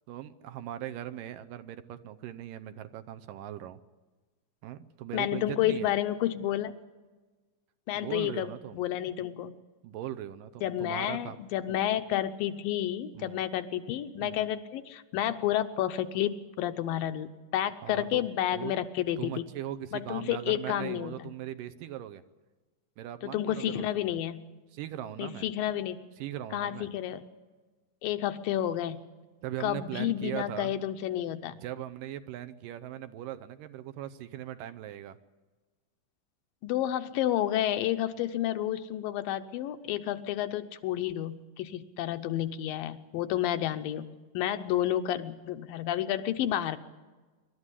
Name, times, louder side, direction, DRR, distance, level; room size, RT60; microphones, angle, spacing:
voice 1, 0.1-3.8 4.6-5.9 8.0-8.8 9.8-11.4 13.1-13.4 14.2-14.5 17.8-18.3 18.5-18.7 19.2-22.2 23.0-24.1 24.7-25.5 26.2-26.9 29.4-30.8 31.5-35.2, right 12 dB, 75° right, 11 dB, 2.3 m, -39 dB
voice 2, 5.1-6.7 7.9-9.6 10.6-19.3 19.9-21.3 23.2-24.4 25.2-26.0 26.5-27.2 28.0-29.0 29.6-31.6 36.6-44.1 44.3-46.8, left 12 dB, 80° left, 9 dB, 2.5 m, -30 dB
25.5 x 12.5 x 9.9 m, 1.3 s
omnidirectional pair, 4.2 m